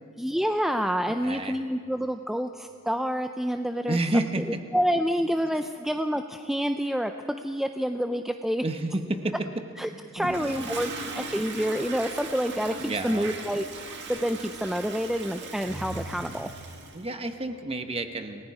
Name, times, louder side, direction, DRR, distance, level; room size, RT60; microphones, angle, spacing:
voice 1, 0.2-4.3 4.7-7.1 7.4-8.6 9.8-16.5, equal, ahead, 7 dB, 0.4 m, -28 dB
voice 2, 1.2-1.5 3.9-4.6 8.6-9.3 10.2-10.7 12.8-13.3 16.9-18.4, right 1 dB, 25° right, 7 dB, 1.1 m, -30 dB
Toilet flush, 10.2-17.0, right 3 dB, 55° right, 2.1 m, -38 dB
28.5 x 18.5 x 4.9 m, 2.5 s
head